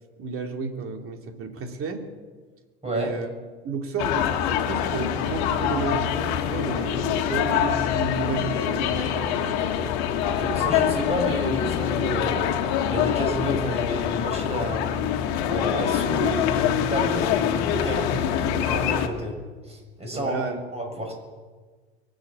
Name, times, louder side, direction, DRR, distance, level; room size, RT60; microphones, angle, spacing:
voice 1, 0.2-2.0 2.8-3.3 3.6-9.9 10.8-10.9 20.1-20.6, right 4 dB, 40° right, 4 dB, 2.8 m, -32 dB
voice 2, 2.8-3.1 10.3-12.5 12.9-14.8 15.5-19.4 19.6-20.3 20.7-21.1, right 1 dB, 20° right, 1 dB, 6.7 m, -30 dB
sound 1, 4.0-19.1, left 9 dB, 60° left, 1.6 m, -25 dB
23.5 x 8.0 x 7.0 m, 1.4 s
hypercardioid pair, 80°, 33 cm